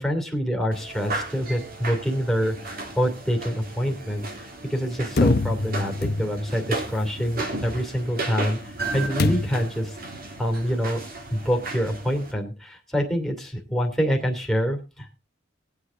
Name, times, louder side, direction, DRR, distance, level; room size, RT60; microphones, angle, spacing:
voice 1, 0.0-8.6 8.9-10.0 10.4-11.0 11.3-15.2, equal, ahead, 1 dB, 2.7 m, -26 dB
stairs thongs, 0.7-12.3, right 2 dB, 55° right, 3.3 m, -34 dB
sound 1, 5.2-6.6 9.2-9.8, left 2 dB, 55° left, 0.8 m, -24 dB
19.5 x 8.3 x 3.7 m, 0.29 s
head